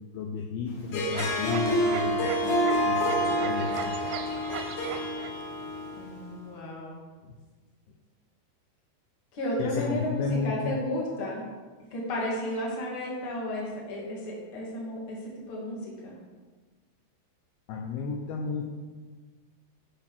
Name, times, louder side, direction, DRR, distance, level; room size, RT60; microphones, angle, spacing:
voice 1, 0.1-2.6 2.9-4.1 7.2-7.3 9.6-10.8 17.7-18.7, left 5 dB, 80° left, 1 dB, 2.4 m, -33 dB
Harp, 0.8-6.2, equal, 60° left, 2.4 m, -28 dB
sound 1, 1.1-5.4, right 8 dB, 85° right, 2.7 m, -39 dB
voice 2, 6.0-7.0 9.3-11.4 11.9-15.8 16.0-16.2, left 1 dB, 35° left, -4 dB, 2.1 m, -33 dB
8.4 x 5.9 x 6.1 m, 1.3 s
omnidirectional pair, 5.2 m